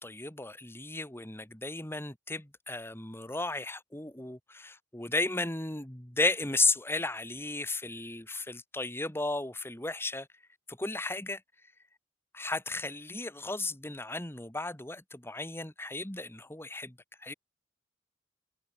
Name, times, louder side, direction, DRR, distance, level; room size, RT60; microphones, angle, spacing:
voice 1, 0.0-10.3 10.7-11.4 12.3-17.3, left 2 dB, 15° left, 2.0 m, -34 dB
head